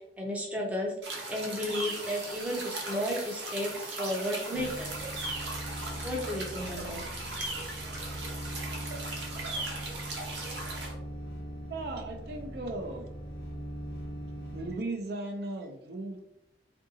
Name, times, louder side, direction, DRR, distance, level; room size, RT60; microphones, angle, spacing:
voice 1, 0.2-0.9 1.3-4.9 6.0-7.0, equal, 10° right, -1 dB, 0.5 m, -33 dB
sound 1, 1.0-10.9, right 2 dB, 85° right, 0.8 m, -38 dB
sound 2, 1.6-6.6 7.2-7.4, right 1 dB, 25° right, 0.9 m, -48 dB
sound 3, 4.5-14.7, right 1 dB, 60° left, 0.6 m, -41 dB
voice 2, 11.7-13.1 14.5-16.2, right 2 dB, 65° right, 3 dB, 0.4 m, -37 dB
3.6 x 2.6 x 2.6 m, 0.81 s
head